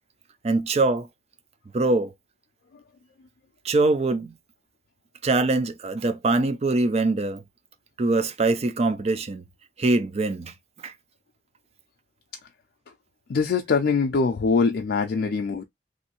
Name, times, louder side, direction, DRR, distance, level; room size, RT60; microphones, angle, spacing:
voice 1, 0.4-1.1 1.7-2.1 3.6-4.3 5.2-7.4 8.0-9.5 9.8-10.5 10.8-10.9, right 2 dB, 35° right, 0.5 m, -23 dB
voice 2, 13.3-15.6, left 4 dB, 65° left, 0.4 m, -23 dB
3.1 x 2.6 x 2.9 m
head